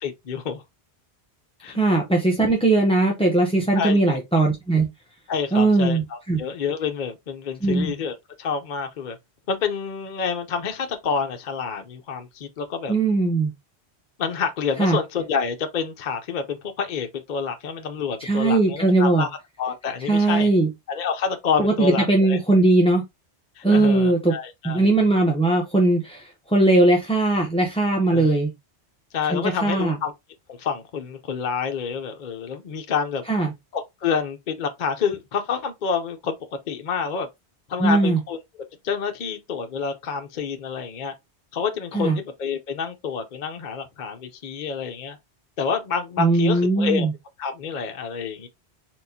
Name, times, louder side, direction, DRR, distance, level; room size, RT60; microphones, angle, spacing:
voice 1, 0.0-0.6 1.6-1.8 3.8-4.2 5.3-9.2 9.5-12.9 14.2-19.3 19.6-20.5 20.9-22.4 23.6-24.8 28.1-28.4 29.1-30.1 30.5-33.2 33.7-36.3 36.7-37.3 37.7-38.4 38.8-41.1 41.5-45.2 45.6-47.1 47.4-48.5, left 6 dB, 50° left, 0.7 m, -28 dB
voice 2, 1.7-4.9 5.5-6.4 7.6-7.9 12.9-13.5 14.8-15.0 18.2-19.3 20.0-20.7 21.6-23.0 23.6-24.4 24.6-28.5 29.3-29.9 33.3-33.5 37.8-38.2 41.9-42.2 46.2-47.1, right 2 dB, 5° left, 0.5 m, -19 dB
4.4 x 3.8 x 2.7 m
omnidirectional pair, 1.1 m